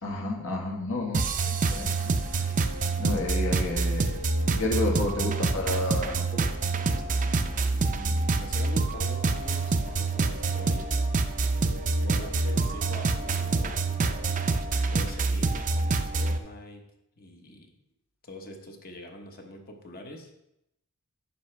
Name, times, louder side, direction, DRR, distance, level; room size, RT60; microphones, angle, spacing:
voice 1, 0.0-2.5 3.0-6.5 6.9-7.0, left 2 dB, 65° left, 0 dB, 1.6 m, -31 dB
sound 1, 1.1-16.4, right 3 dB, 35° right, 0.5 m, -27 dB
voice 2, 7.7-10.9 11.9-13.8 14.9-16.9 17.2-17.7 18.2-20.3, left 1 dB, 45° left, 3 dB, 1.1 m, -43 dB
9.4 x 5.8 x 3.3 m, 0.84 s
head